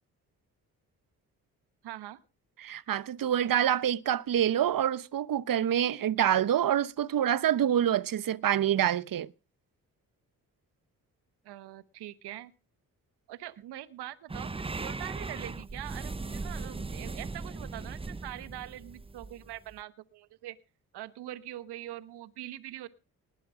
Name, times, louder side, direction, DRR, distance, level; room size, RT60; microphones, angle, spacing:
voice 1, 1.8-2.2 11.4-12.5 13.3-20.6 20.9-22.9, right 14 dB, 80° right, 1.2 m, -43 dB
voice 2, 2.6-9.3, right 10 dB, 55° right, 1.0 m, -26 dB
sound 1, 14.3-19.8, right 3 dB, 15° right, 0.6 m, -38 dB
20.0 x 7.8 x 5.0 m
supercardioid pair, 50°, 39 cm